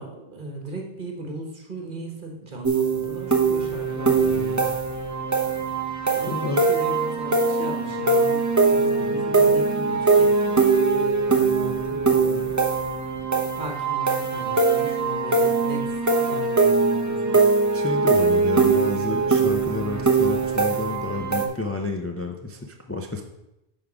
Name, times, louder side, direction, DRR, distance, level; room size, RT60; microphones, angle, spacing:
voice 1, 0.0-4.8 6.1-10.5 10.9-12.5 13.6-17.5, right 2 dB, 55° right, 2 dB, 1.5 m, -37 dB
sound 1, 2.6-21.5, right 4 dB, 20° right, 0.8 m, -22 dB
voice 2, 6.3-6.6 17.7-23.2, left 2 dB, 20° left, 3 dB, 0.4 m, -30 dB
8.3 x 3.7 x 6.0 m, 0.93 s
omnidirectional pair, 1.0 m